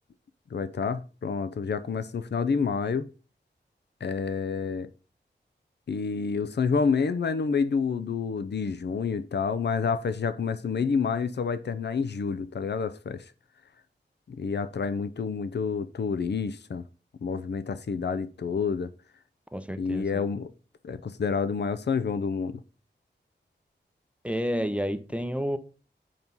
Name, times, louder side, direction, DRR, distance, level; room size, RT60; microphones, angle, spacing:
voice 1, 0.5-3.1 4.0-4.9 5.9-13.2 14.3-16.8 17.2-18.9 19.8-20.5 20.8-22.6, left 5 dB, 65° left, 0.6 m, -28 dB
voice 2, 19.5-20.2 24.2-25.6, equal, 5° right, 0.6 m, -30 dB
7.5 x 4.6 x 5.5 m
wide cardioid pair, 95°, 19 cm